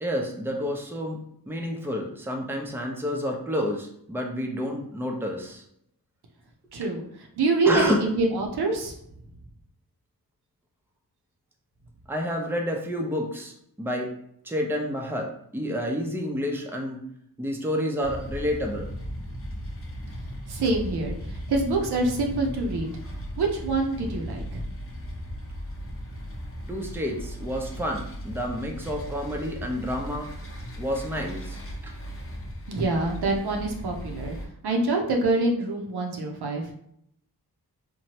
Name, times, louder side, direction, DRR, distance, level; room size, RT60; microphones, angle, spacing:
voice 1, 0.0-1.2 1.5-5.6 7.6-8.0 12.1-14.1 14.4-17.0 17.4-18.9 26.7-30.3 30.8-31.9, equal, 5° right, 1 dB, 0.6 m, -29 dB
voice 2, 6.7-7.0 7.4-8.9 20.5-21.2 21.5-22.9 23.4-24.6 32.7-34.3 34.6-36.7, right 2 dB, 75° right, 1 dB, 0.7 m, -25 dB
sound 1, 18.0-34.4, equal, 35° left, 0.8 m, -37 dB
2.9 x 2.2 x 2.8 m, 0.72 s
cardioid pair, 45°, 39 cm